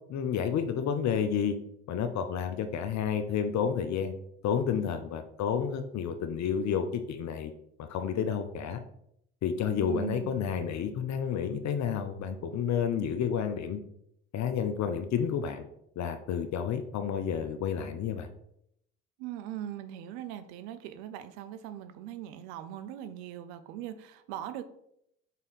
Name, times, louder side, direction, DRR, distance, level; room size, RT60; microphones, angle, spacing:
voice 1, 0.1-1.6 1.9-4.1 4.4-7.5 7.8-8.8 9.4-13.8 14.3-15.6 16.0-18.3, left 7 dB, 55° left, 8 dB, 0.8 m, -30 dB
voice 2, 9.8-10.4 19.2-24.6, right 11 dB, 80° right, 12 dB, 0.6 m, -40 dB
5.4 x 5.0 x 4.1 m, 0.75 s
hypercardioid pair, 60°, 33 cm